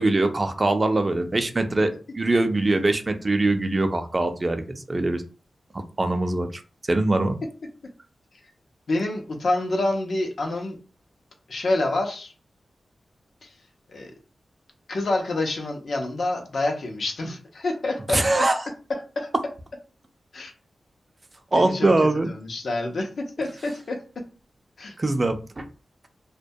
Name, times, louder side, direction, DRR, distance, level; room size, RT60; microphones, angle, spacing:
voice 1, 0.0-4.6 4.9-5.2 6.0-6.6 6.9-7.4 18.1-18.6 21.5-22.3 25.0-25.7, right 2 dB, 35° right, 7 dB, 0.4 m, -22 dB
voice 2, 8.9-10.8 11.5-12.3 13.4-13.5 13.9-14.1 14.9-18.5 19.2-19.3 20.3-20.5 21.5-21.9 22.2-24.0 24.8-24.9, left 2 dB, 75° left, 2 dB, 0.5 m, -27 dB
2.2 x 2.2 x 2.6 m, 0.35 s
cardioid pair, 70°, 0 cm